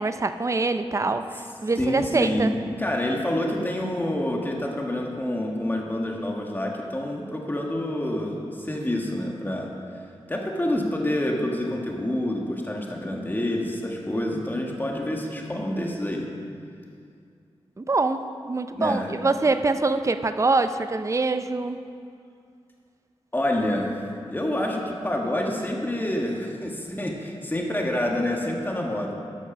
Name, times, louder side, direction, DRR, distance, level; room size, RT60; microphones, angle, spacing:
voice 1, 0.0-2.5 17.8-21.8, right 3 dB, 30° right, 10 dB, 0.5 m, -24 dB
voice 2, 1.8-10.0 10.3-16.3 18.7-19.2 23.3-29.1, left 1 dB, 20° left, 0 dB, 1.6 m, -27 dB
12.5 x 6.1 x 6.0 m, 2.4 s
cardioid pair, 55°, 11 cm